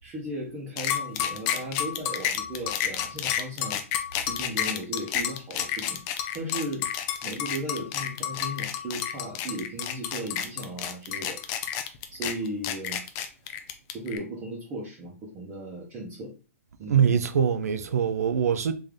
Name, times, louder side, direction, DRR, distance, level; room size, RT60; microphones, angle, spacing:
voice 1, 0.0-3.8 4.2-6.0 6.3-6.9 7.2-11.4 12.1-13.0 13.9-16.3 16.8-17.2, right 1 dB, 20° right, 0.8 m, -36 dB
sound 1, 0.8-14.2, left 10 dB, 25° left, 0.4 m, -30 dB
voice 2, 16.9-18.7, right 7 dB, 85° right, 0.5 m, -23 dB
3.4 x 2.7 x 3.6 m
hypercardioid pair, 160°, 8 cm